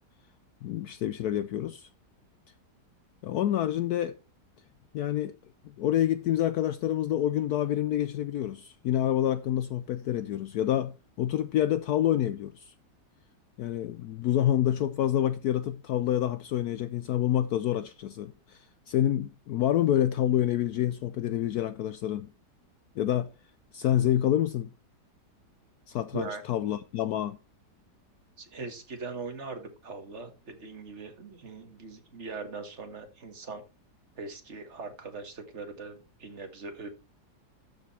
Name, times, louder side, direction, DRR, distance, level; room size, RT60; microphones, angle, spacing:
voice 1, 0.6-1.9 3.2-4.1 4.9-5.3 5.8-12.7 13.6-22.3 23.0-23.3 23.7-24.7 25.9-27.4, left 11 dB, 70° left, 1.1 m, -27 dB
voice 2, 28.4-33.6 34.2-36.9, right 4 dB, 40° right, 1.9 m, -40 dB
13.0 x 5.3 x 4.2 m
omnidirectional pair, 1.8 m